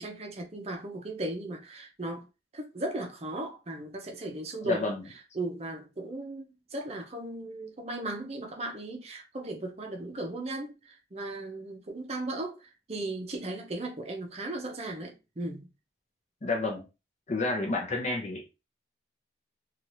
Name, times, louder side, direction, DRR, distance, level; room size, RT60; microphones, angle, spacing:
voice 1, 0.0-2.3 2.5-4.9 5.3-15.7, right 2 dB, 35° right, 0.6 m, -37 dB
voice 2, 4.6-5.0 16.4-16.9 17.3-18.4, left 2 dB, 35° left, 0.6 m, -30 dB
2.8 x 2.4 x 3.0 m
head